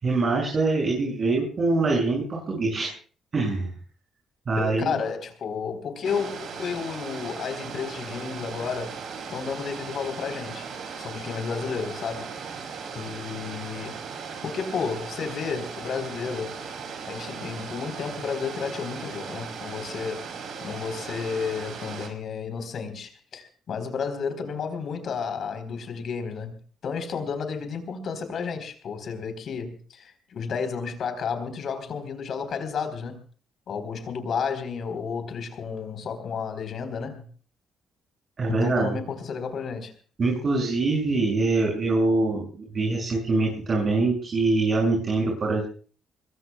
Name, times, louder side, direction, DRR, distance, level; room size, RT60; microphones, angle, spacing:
voice 1, 0.0-2.9 3.3-3.7 4.5-5.0 38.4-39.0 40.2-45.6, right 3 dB, 45° right, 6.7 m, -24 dB
voice 2, 4.6-9.0 9.3-10.7 11.0-12.2 13.0-14.0 14.4-16.6 17.0-20.3 20.6-26.6 26.8-33.2 33.7-37.2 38.5-39.9, left 6 dB, 60° left, 4.1 m, -32 dB
sound 1, 6.0-22.1, right 5 dB, 70° right, 5.0 m, -38 dB
25.5 x 21.5 x 2.4 m
cardioid pair, 90°, 0 cm